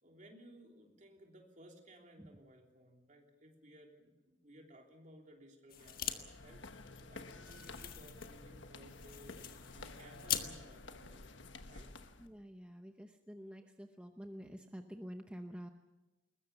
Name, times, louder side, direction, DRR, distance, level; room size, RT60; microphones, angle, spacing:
voice 1, 0.0-11.9, right 1 dB, 40° right, 1 dB, 3.3 m, -59 dB
sound 1, 5.7-12.3, left 2 dB, 75° left, 1.3 m, -51 dB
sound 2, 5.7-6.2 6.5-6.6 6.9-10.5, left 10 dB, 50° left, 1.6 m, -42 dB
voice 2, 12.2-15.7, equal, 5° right, 5 dB, 0.8 m, -49 dB
21.0 x 21.0 x 7.0 m, 1.1 s
head